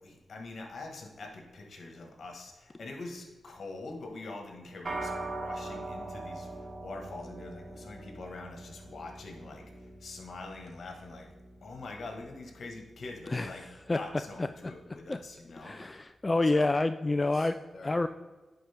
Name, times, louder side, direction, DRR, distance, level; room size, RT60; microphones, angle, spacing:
voice 1, 0.0-11.3 11.6-13.6 13.9-15.8 16.4-16.7 17.1-18.1, left 3 dB, 65° left, 2 dB, 1.6 m, -44 dB
sound 1, 4.9-14.4, right 2 dB, 50° right, 1.4 m, -43 dB
voice 2, 13.3-14.0 14.4-14.7 15.1-15.2 15.6-17.6 17.8-18.1, left 2 dB, 30° left, 10 dB, 0.3 m, -28 dB
10.5 x 4.4 x 3.6 m, 1.2 s
supercardioid pair, 45°, 0 cm